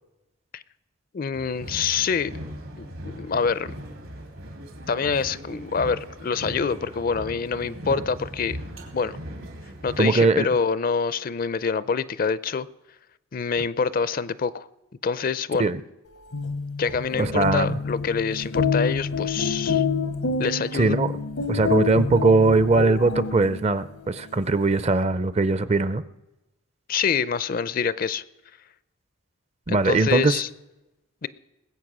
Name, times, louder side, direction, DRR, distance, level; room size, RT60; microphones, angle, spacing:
voice 1, 1.1-2.3 2.8-3.7 4.9-8.6 8.9-9.2 9.8-12.7 13.3-14.7 15.0-15.7 16.8-19.8 20.4-21.0 26.9-28.2 29.7-30.5 31.2-31.3, left 5 dB, 45° left, 0.4 m, -26 dB
sound 1, 1.3-10.0, equal, 80° right, 3.0 m, -39 dB
voice 2, 10.0-10.5 15.6-15.8 17.2-17.8 20.7-21.1 21.5-26.0 29.7-30.4, right 3 dB, 30° right, 0.5 m, -20 dB
sound 2, 16.2-23.8, left 5 dB, 80° left, 1.0 m, -27 dB
20.0 x 8.3 x 6.1 m
head